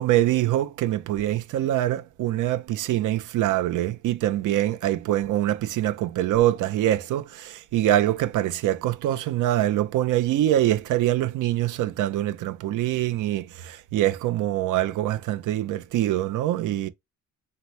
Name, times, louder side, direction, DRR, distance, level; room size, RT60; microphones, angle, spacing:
voice 1, 0.0-16.9, right 13 dB, 80° right, 0.7 m, -24 dB
4.2 x 3.0 x 3.1 m
cardioid pair, 90°, 30 cm